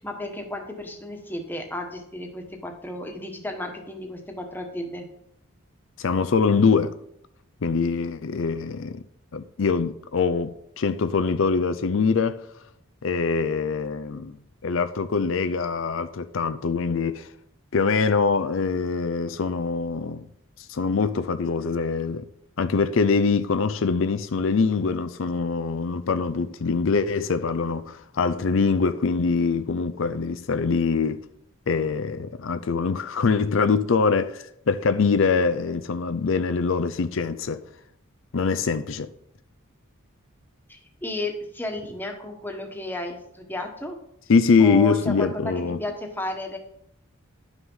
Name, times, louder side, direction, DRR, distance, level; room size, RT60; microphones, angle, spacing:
voice 1, 0.0-5.0 7.9-8.1 40.7-44.0 44.6-45.5 45.8-46.6, left 1 dB, 10° left, 1.3 m, -33 dB
voice 2, 6.0-6.9 7.6-9.0 9.3-12.4 13.0-14.4 14.6-17.3 17.7-20.3 20.6-22.2 22.6-31.2 31.7-37.6 38.3-39.1 44.3-45.8, left 4 dB, 65° left, 0.5 m, -23 dB
11.5 x 6.0 x 5.6 m
head